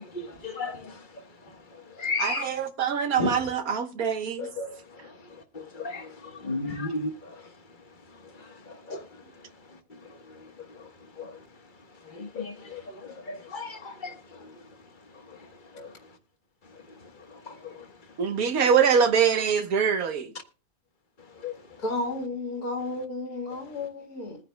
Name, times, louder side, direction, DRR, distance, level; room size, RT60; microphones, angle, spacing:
voice 1, 0.0-2.7 3.2-3.5 4.4-7.6 8.1-11.5 12.0-14.9 15.1-16.0 16.7-17.9 21.2-21.8 23.5-23.7, left 3 dB, 30° left, 1.4 m, -37 dB
voice 2, 2.2-4.5 18.2-20.3, right 7 dB, 65° right, 1.6 m, -24 dB
voice 3, 21.8-24.4, left 2 dB, 65° left, 2.4 m, -32 dB
21.0 x 9.7 x 2.3 m
omnidirectional pair, 1.7 m